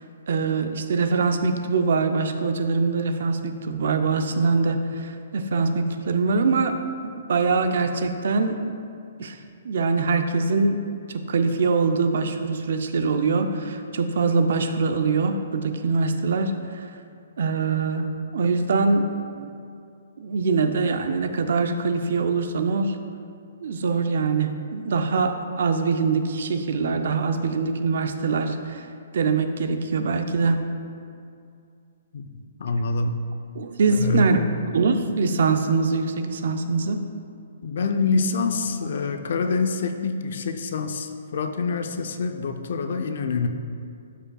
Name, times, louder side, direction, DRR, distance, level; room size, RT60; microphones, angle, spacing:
voice 1, 0.3-6.7 7.0-8.6 9.2-9.4 9.6-16.9 17.4-19.5 20.2-23.0 23.6-28.9 29.1-30.6 33.5-34.4 34.7-37.0, right 4 dB, 50° right, 7 dB, 0.4 m, -23 dB
voice 2, 32.6-33.2 33.9-34.3 37.6-43.5, left 4 dB, 45° left, 7 dB, 0.4 m, -26 dB
12.0 x 5.0 x 2.3 m, 2.4 s
hypercardioid pair, 180°, 0 cm